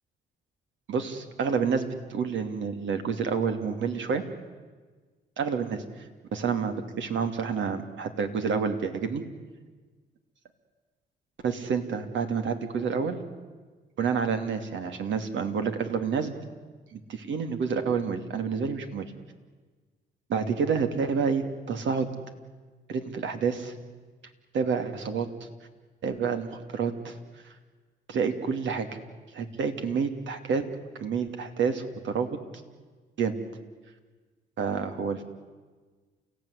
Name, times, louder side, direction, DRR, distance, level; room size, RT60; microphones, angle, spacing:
voice 1, 0.9-4.2 5.4-5.8 6.3-9.2 11.4-13.2 14.0-16.3 16.9-19.1 20.3-22.1 22.9-23.7 24.5-25.3 26.0-27.2 28.1-28.9 29.3-30.6 30.9-32.3 33.2-33.3 34.6-35.2, right 6 dB, 70° right, 7 dB, 2.8 m, -28 dB
30.0 x 16.0 x 10.0 m, 1.4 s
cardioid pair, 90°, 20 cm